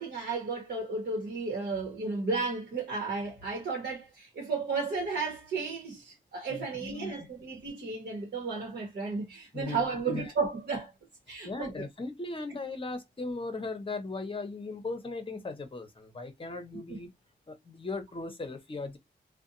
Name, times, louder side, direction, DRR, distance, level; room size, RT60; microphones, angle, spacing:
voice 1, 0.0-10.9 11.3-11.7 16.9-17.0, right 4 dB, 60° right, 1.0 m, -33 dB
voice 2, 6.5-7.2 9.5-9.8 10.1-10.3 11.4-17.1 17.5-19.0, left 3 dB, 30° left, 0.8 m, -38 dB
2.6 x 2.2 x 2.6 m
cardioid pair, 70°, 19 cm